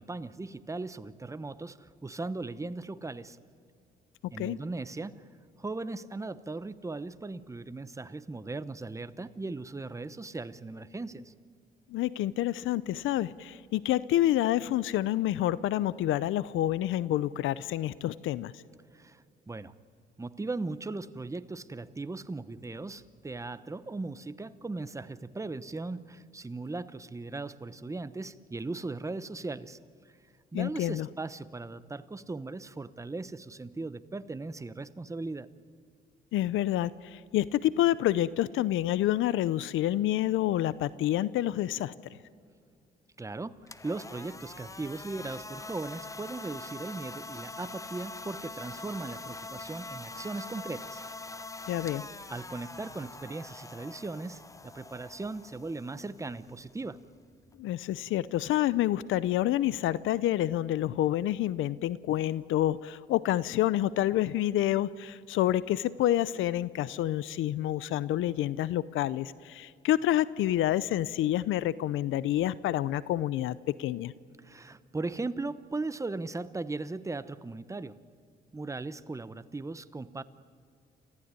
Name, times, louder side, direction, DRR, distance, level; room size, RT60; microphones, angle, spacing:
voice 1, 0.0-3.4 4.3-5.2 5.6-11.3 18.9-19.7 20.2-29.8 30.5-35.5 43.2-51.0 51.8-51.9 52.3-57.0 74.4-78.0 78.5-80.2, right 3 dB, 15° right, 14 dB, 0.9 m, -38 dB
voice 2, 11.9-18.6 30.5-31.1 36.3-41.9 51.7-52.0 57.6-74.1, left 13 dB, 80° left, 18 dB, 0.6 m, -28 dB
sound 1, 43.6-57.6, left 3 dB, 15° left, 0.9 m, -44 dB
28.5 x 15.0 x 9.7 m, 2.2 s
cardioid pair, 90°, 20 cm